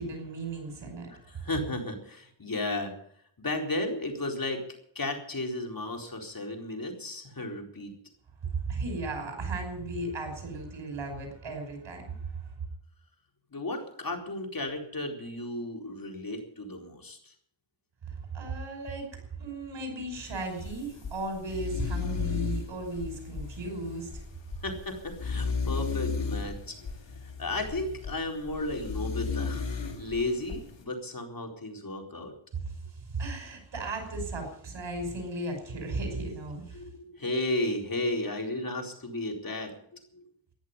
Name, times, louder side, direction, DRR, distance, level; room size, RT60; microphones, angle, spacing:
voice 1, 0.0-1.4 8.7-12.0 18.3-19.1 19.4-24.1 33.1-36.6, right 2 dB, 80° right, 4 dB, 5.7 m, -35 dB
voice 2, 1.2-2.9 3.4-4.6 4.9-7.9 13.5-17.3 24.6-26.8 27.2-29.6 30.0-32.3 36.7-40.2, left 2 dB, 50° left, 3 dB, 4.2 m, -34 dB
sound 1, 20.3-30.8, left 5 dB, 75° left, 3.1 m, -35 dB
14.5 x 10.5 x 9.6 m, 0.65 s
cardioid pair, 50°, 44 cm